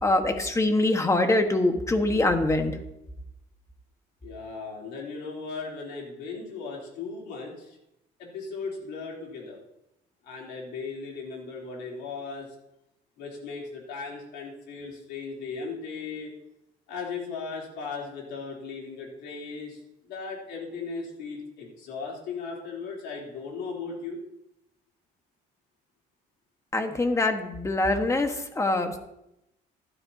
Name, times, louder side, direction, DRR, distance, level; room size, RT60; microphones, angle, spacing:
voice 1, 0.0-2.7 26.7-29.0, left 2 dB, 15° left, 5 dB, 1.6 m, -24 dB
voice 2, 4.2-7.8 8.2-9.6 10.2-12.5 13.2-16.3 16.9-24.2, left 4 dB, 90° left, -3 dB, 3.6 m, -37 dB
15.0 x 12.5 x 2.9 m, 0.85 s
cardioid pair, 110°, 17 cm